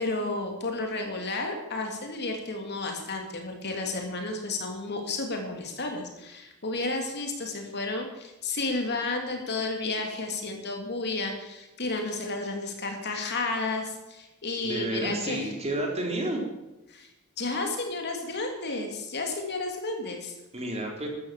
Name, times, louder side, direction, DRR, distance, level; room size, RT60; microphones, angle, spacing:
voice 1, 0.0-15.5 16.9-17.1 17.4-20.4, left 3 dB, 50° left, 3 dB, 3.1 m, -32 dB
voice 2, 14.6-16.4 20.5-21.1, right 1 dB, 30° right, 1 dB, 3.9 m, -30 dB
14.5 x 12.5 x 7.6 m, 0.97 s
head